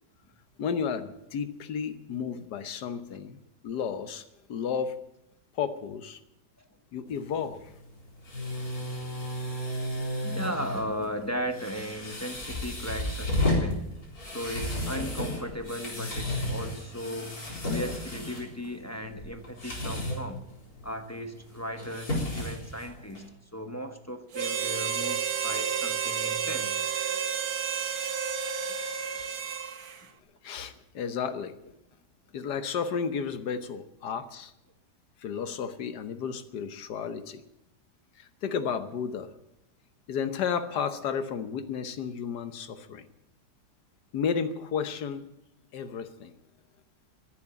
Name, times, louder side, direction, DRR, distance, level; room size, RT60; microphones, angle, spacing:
voice 1, 0.6-3.4 3.6-4.2 4.5-5.0 5.6-6.2 6.9-7.6 30.4-31.5 32.3-34.5 35.2-37.4 38.2-39.3 40.1-43.0 44.1-45.3 45.7-46.3, left 6 dB, 80° left, 1.6 m, -32 dB
sound 1, 7.1-23.3, left 1 dB, 65° left, 4.7 m, -34 dB
voice 2, 10.2-13.9 14.2-17.4 17.7-20.4 20.8-26.9 30.0-30.1, equal, 15° left, 0.7 m, -36 dB
Harmonica, 24.3-30.0, right 7 dB, 65° right, 1.5 m, -31 dB
14.0 x 11.0 x 8.7 m
omnidirectional pair, 1.7 m